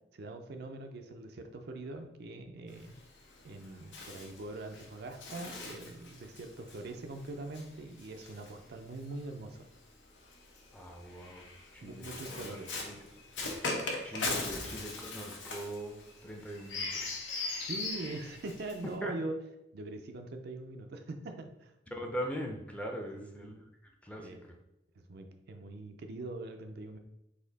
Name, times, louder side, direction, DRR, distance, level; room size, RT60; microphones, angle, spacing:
voice 1, 0.1-2.9 3.4-9.7 11.8-12.8 14.1-14.4 17.6-19.4 19.7-21.7 23.1-23.5 24.2-24.4 25.0-27.0, right 2 dB, 60° right, 5 dB, 0.4 m, -43 dB
Bird, 2.7-9.2 10.2-19.0, left 3 dB, 85° left, 0.8 m, -40 dB
voice 2, 10.7-13.0 14.0-17.2 19.0-19.1 21.9-23.6 24.0-24.3, equal, 5° left, 1 dB, 0.5 m, -41 dB
4.2 x 2.7 x 3.9 m, 0.86 s
head